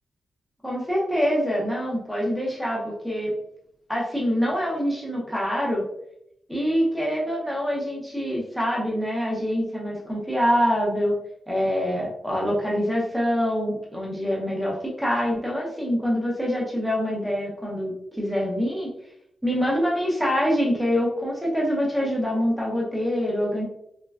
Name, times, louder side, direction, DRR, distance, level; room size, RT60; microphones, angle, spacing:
voice 1, 0.6-3.3 3.9-5.8 6.5-11.2 11.5-18.9 19.4-23.6, equal, ahead, -4 dB, 0.6 m, -25 dB
3.1 x 2.1 x 2.3 m, 0.75 s
wide cardioid pair, 170°, 0 cm